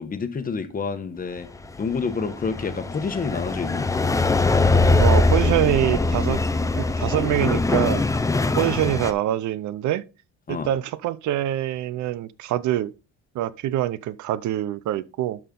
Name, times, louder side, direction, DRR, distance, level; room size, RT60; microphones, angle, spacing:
voice 1, 0.0-1.5 1.8-3.9 10.5-10.7, left 5 dB, 25° left, 1.1 m, -28 dB
sound 1, 1.5-9.1, left 3 dB, 10° left, 0.6 m, -22 dB
voice 2, 5.0-6.4 6.7-8.0 8.6-10.0 10.5-12.9 13.3-15.4, right 13 dB, 60° right, 0.6 m, -24 dB
12.0 x 4.3 x 3.8 m
cardioid pair, 135°, 32 cm